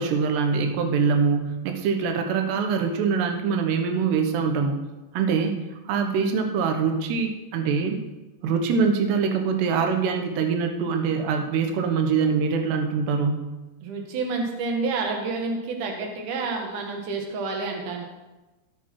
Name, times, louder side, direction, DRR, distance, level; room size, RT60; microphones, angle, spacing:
voice 1, 0.0-4.8 5.1-5.6 5.9-8.0 8.4-13.4, right 5 dB, 75° right, 5 dB, 3.2 m, -24 dB
voice 2, 13.8-18.0, right 3 dB, 55° right, 1 dB, 2.8 m, -29 dB
15.0 x 8.2 x 4.8 m, 1.1 s
omnidirectional pair, 5.2 m